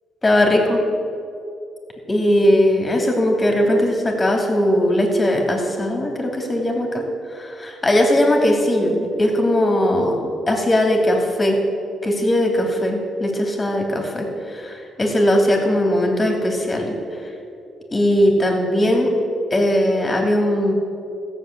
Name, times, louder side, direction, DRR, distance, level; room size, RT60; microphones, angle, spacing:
voice 1, 0.2-0.8 2.1-7.0 7.3-11.6 12.0-16.9 17.9-19.1 19.5-20.7, left 1 dB, 20° left, 2 dB, 2.8 m, -19 dB
15.0 x 7.3 x 8.6 m, 2.6 s
cardioid pair, 90°, 0 cm